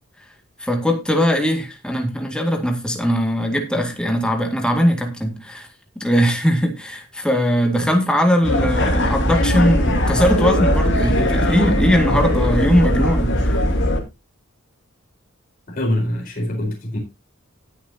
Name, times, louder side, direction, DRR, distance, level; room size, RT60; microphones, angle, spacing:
voice 1, 0.6-5.7 6.0-13.5, equal, 5° left, 2.0 m, -20 dB
sound 1, 8.4-14.0, left 1 dB, 60° left, 2.5 m, -19 dB
voice 2, 15.7-17.0, left 1 dB, 45° left, 4.3 m, -24 dB
19.0 x 6.4 x 2.8 m
head